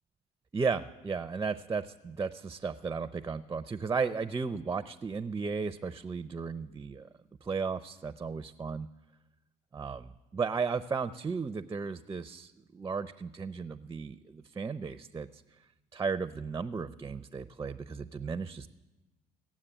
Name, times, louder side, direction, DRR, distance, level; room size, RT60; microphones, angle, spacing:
voice 1, 0.5-7.1 7.4-8.9 9.7-15.4 15.9-18.7, right 5 dB, 20° right, 13 dB, 0.4 m, -35 dB
17.0 x 7.3 x 10.0 m, 1.1 s
cardioid pair, 110°, 17 cm